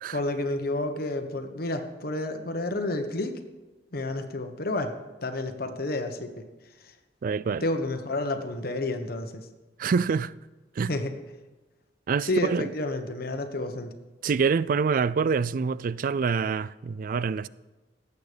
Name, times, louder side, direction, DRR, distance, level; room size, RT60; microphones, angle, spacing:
voice 1, 0.1-3.4 3.9-5.0 5.2-6.4 6.8-6.9 7.6-9.5 10.9-11.2 12.2-13.9, left 2 dB, 60° left, 1.2 m, -30 dB
voice 2, 7.2-7.6 9.8-10.3 10.8-10.9 12.1-12.7 14.2-17.5, right 5 dB, 50° right, 0.3 m, -26 dB
19.0 x 8.4 x 5.1 m
head